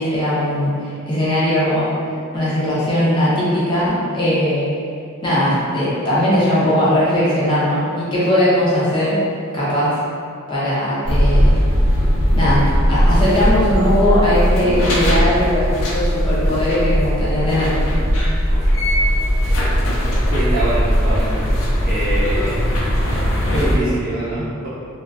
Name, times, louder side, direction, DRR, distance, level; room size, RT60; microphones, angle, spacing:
voice 1, 0.0-1.9 2.3-4.7 5.2-9.2 9.5-10.0 10.5-11.6 12.3-15.7 15.9-17.7, left 1 dB, 25° left, -10 dB, 0.5 m, -19 dB
sound 1, 11.0-23.8, equal, 90° left, 0.5 m, -18 dB
voice 2, 20.3-21.3 21.8-22.6 23.5-24.7, right 1 dB, 45° right, -11 dB, 0.9 m, -23 dB
2.3 x 2.3 x 2.3 m, 2.4 s
head